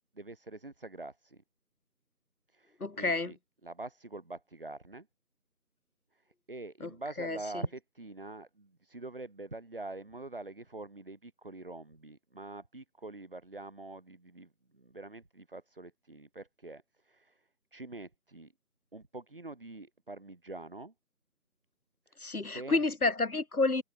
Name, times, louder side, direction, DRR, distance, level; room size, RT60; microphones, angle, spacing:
voice 1, 0.2-1.4 2.5-3.4 3.6-5.1 6.5-17.4 17.7-18.5 18.9-20.9 22.1-22.8, right 2 dB, 35° right, 3.7 m, -45 dB
voice 2, 2.8-3.3 6.8-6.9 7.2-7.6 22.2-23.8, left 3 dB, 65° left, 1.6 m, -30 dB
open air
figure-of-eight pair, 170°, 48 cm